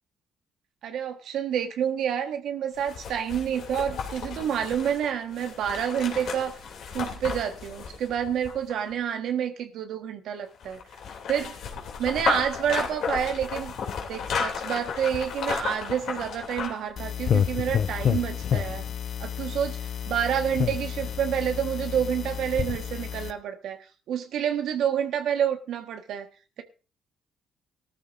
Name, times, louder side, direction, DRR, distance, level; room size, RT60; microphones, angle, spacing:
voice 1, 0.8-6.6 6.9-10.8 11.3-11.6 12.0-13.7 14.1-18.8 19.2-23.8 24.1-26.3, right 9 dB, 80° right, 6 dB, 1.5 m, -28 dB
sound 1, 2.8-8.9 10.6-16.9 17.3-17.4, left 5 dB, 75° left, 3.1 m, -33 dB
sound 2, 17.0-23.3, left 8 dB, 55° left, 0.8 m, -29 dB
18.0 x 13.5 x 2.7 m, 0.33 s
cardioid pair, 90°, 0 cm